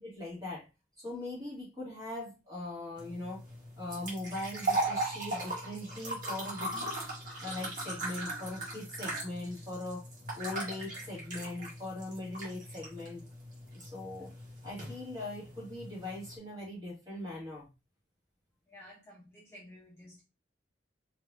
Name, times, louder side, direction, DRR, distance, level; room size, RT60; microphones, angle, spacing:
voice 1, 0.0-0.7 1.0-3.4 3.8-7.0 7.4-10.1 10.3-13.2 13.7-14.3 14.6-17.7, left 2 dB, 20° right, -6 dB, 2.6 m, -40 dB
sound 1, 3.0-16.4, right 2 dB, 45° right, 1.8 m, -39 dB
voice 2, 18.7-20.2, equal, 15° left, -6 dB, 1.2 m, -52 dB
5.1 x 3.0 x 2.8 m, 0.27 s
head